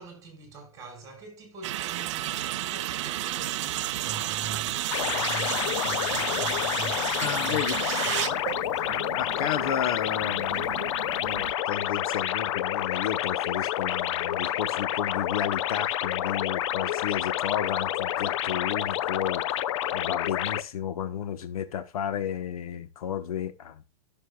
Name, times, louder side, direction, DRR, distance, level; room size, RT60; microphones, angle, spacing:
voice 1, 0.0-8.9, right 3 dB, 15° right, 5.2 m, -43 dB
sound 1, 1.6-11.5, right 14 dB, 50° right, 0.4 m, -32 dB
sound 2, 4.9-20.6, left 12 dB, 50° left, 0.6 m, -29 dB
voice 2, 7.2-7.7 8.9-10.8 11.2-19.6 19.9-23.8, left 9 dB, 70° left, 1.2 m, -32 dB
14.5 x 6.9 x 2.3 m
hypercardioid pair, 155°, 19 cm